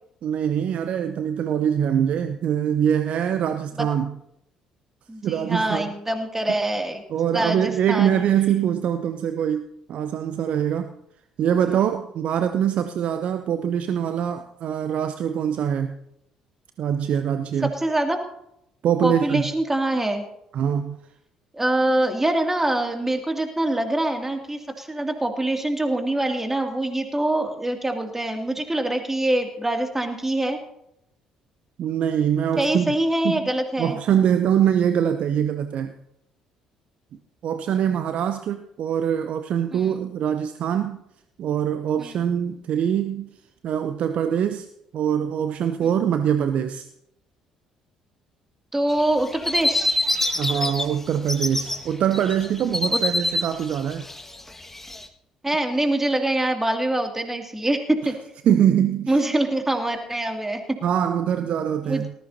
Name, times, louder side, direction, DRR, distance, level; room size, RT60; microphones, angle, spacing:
voice 1, 0.2-4.1 5.2-5.9 7.1-10.9 11.4-16.0 16.8-17.7 18.8-19.4 20.5-21.0 31.8-32.9 33.2-33.5 33.8-35.9 37.4-41.0 41.4-43.3 43.6-44.7 44.9-46.9 50.4-54.0 58.5-59.2 60.8-62.1, right 9 dB, 55° right, 9 dB, 0.7 m, -23 dB
voice 2, 5.1-7.0 7.3-8.2 17.6-18.2 19.0-20.2 21.5-30.6 32.6-34.0 39.7-39.9 42.0-42.2 48.7-49.9 52.8-53.0 55.4-58.1 59.1-60.6 61.9-62.1, right 1 dB, 15° right, 3 dB, 2.5 m, -24 dB
sound 1, 48.9-50.8 51.1-51.8 52.1-55.0, left 2 dB, 10° left, 1.7 m, -25 dB
19.0 x 14.0 x 2.8 m, 0.78 s
figure-of-eight pair, 50°, 3 cm